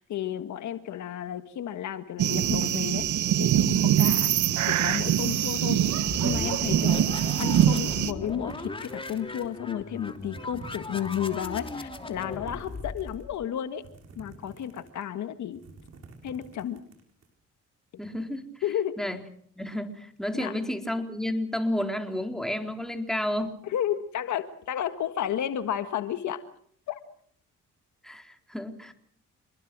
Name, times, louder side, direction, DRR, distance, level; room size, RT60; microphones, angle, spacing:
voice 1, 0.0-3.1 3.4-4.3 4.6-5.8 6.2-13.8 14.2-15.6 16.2-16.8 18.6-19.0 20.3-20.5 23.6-26.4 26.9-27.0, left 10 dB, 70° left, 9 dB, 1.8 m, -32 dB
sound 1, 2.2-8.1, right 10 dB, 75° right, 1.5 m, -24 dB
sound 2, 6.0-13.5, left 2 dB, 15° left, 3.1 m, -38 dB
sound 3, 8.2-9.6 10.0-11.4 11.8-13.2 13.7-15.1 15.4-17.3, right 4 dB, 55° right, 7.1 m, -49 dB
voice 2, 18.0-18.4 19.0-19.2 19.6-23.6 28.0-28.9, left 1 dB, ahead, 5 dB, 3.9 m, -31 dB
28.0 x 21.5 x 6.2 m, 0.63 s
cardioid pair, 90°, 30 cm